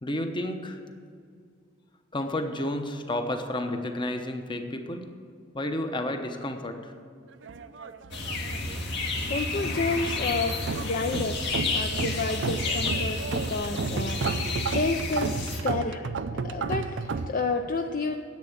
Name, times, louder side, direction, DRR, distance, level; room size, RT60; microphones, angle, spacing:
voice 1, 0.0-0.8 2.1-5.1 5.5-6.9, left 1 dB, 25° left, 6 dB, 0.9 m, -31 dB
sound 1, 7.4-8.8 9.0-9.8 10.2-17.3, right 4 dB, 65° right, 0.5 m, -33 dB
sound 2, 8.1-15.6, left 2 dB, 60° left, 1.9 m, -31 dB
voice 2, 8.8-18.2, left 3 dB, 45° left, 5 dB, 0.5 m, -31 dB
10.5 x 8.0 x 7.9 m, 2.3 s
head